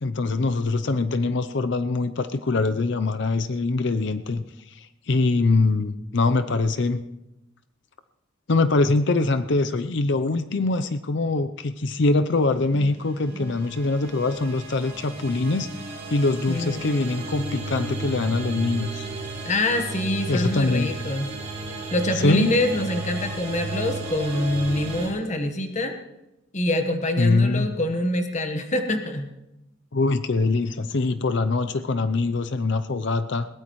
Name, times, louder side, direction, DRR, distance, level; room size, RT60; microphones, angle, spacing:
voice 1, 0.0-7.0 8.5-19.1 20.3-20.9 22.2-22.5 27.2-27.7 29.9-33.5, left 3 dB, 60° left, 10 dB, 0.6 m, -23 dB
sound 1, 12.8-25.1, right 2 dB, 30° right, 4.0 m, -34 dB
voice 2, 16.5-16.9 19.4-21.4 21.9-26.0 26.5-29.3, left 1 dB, 35° left, 6 dB, 1.3 m, -25 dB
21.5 x 17.5 x 3.1 m, 0.92 s
head